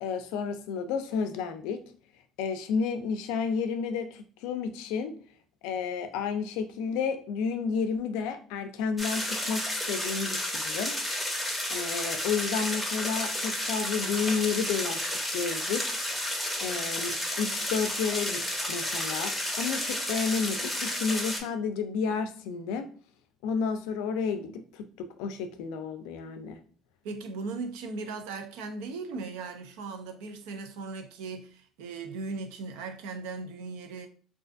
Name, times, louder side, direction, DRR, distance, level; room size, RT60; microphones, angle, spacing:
voice 1, 0.0-1.8 2.4-5.1 5.6-10.9 11.7-15.8 16.6-18.4 18.7-22.9 23.4-26.6, left 5 dB, 85° left, 0.4 m, -31 dB
sound 1, 9.0-21.4, left 1 dB, 5° left, 0.6 m, -31 dB
voice 2, 27.0-34.1, right 4 dB, 90° right, 0.4 m, -38 dB
2.4 x 2.4 x 2.5 m
cardioid pair, 120°, 0 cm